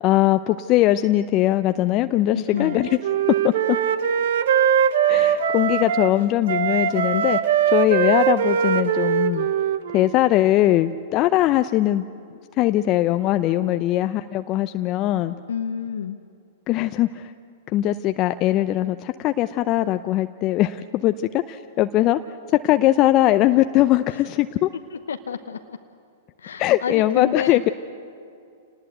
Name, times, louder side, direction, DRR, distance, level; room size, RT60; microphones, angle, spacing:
voice 1, 0.0-3.0 3.4-3.8 5.1-7.4 7.7-9.5 9.9-12.0 12.6-15.3 16.7-17.3 17.7-22.2 22.6-24.7 26.6-27.7, left 14 dB, 40° left, 10 dB, 0.6 m, -20 dB
voice 2, 2.3-2.8 7.0-7.2 15.5-16.2 24.9-25.8 26.4-27.6, left 7 dB, 80° left, 7 dB, 0.8 m, -29 dB
Wind instrument woodwind instrument, 2.6-6.1 6.5-10.2, right 9 dB, 65° right, 1.0 m, -21 dB
28.0 x 19.5 x 8.0 m, 2.5 s
hypercardioid pair, 110°, 0 cm